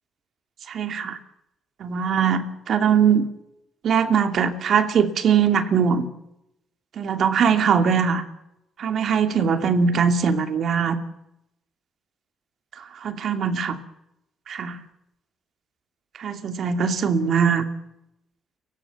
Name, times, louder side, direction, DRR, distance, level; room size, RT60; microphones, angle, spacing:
voice 1, 0.7-1.2 1.8-3.3 3.8-6.1 7.0-8.2 8.8-11.0 12.8-13.8 14.5-14.8 16.2-17.6, right 7 dB, 60° right, 8 dB, 2.7 m, -21 dB
30.0 x 16.5 x 7.3 m, 0.86 s
cardioid pair, 90°, 0 cm